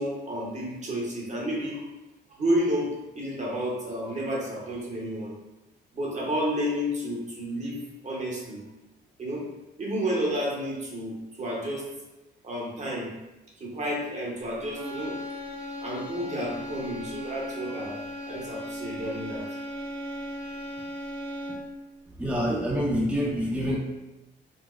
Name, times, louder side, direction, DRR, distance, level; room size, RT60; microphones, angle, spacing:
voice 1, 0.0-1.8 2.3-5.3 5.9-8.6 9.2-9.5 9.8-11.9 12.4-13.1 13.6-15.2 15.8-19.5, equal, 35° right, -3 dB, 0.9 m, -31 dB
sound 1, 14.7-21.8, equal, 60° right, 1.3 m, -37 dB
voice 2, 22.2-23.8, equal, 5° right, -5 dB, 0.7 m, -26 dB
3.9 x 2.1 x 2.4 m, 0.98 s
cardioid pair, 90°, 20 cm